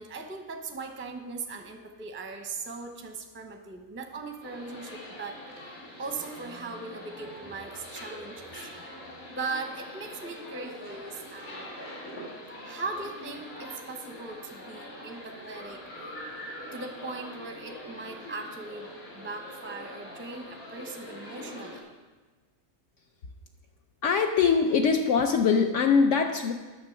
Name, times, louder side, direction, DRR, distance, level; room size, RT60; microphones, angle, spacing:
voice 1, 0.0-5.4 6.0-8.7 9.3-11.8 12.6-16.1 16.7-18.9 19.1-21.8, right 3 dB, 15° right, 4 dB, 0.5 m, -39 dB
sound 1, 4.4-21.8, left 1 dB, 80° left, 2.6 m, -43 dB
voice 2, 24.0-26.5, left 5 dB, 65° left, 5 dB, 0.9 m, -22 dB
9.5 x 6.8 x 5.8 m, 1.3 s
omnidirectional pair, 1.5 m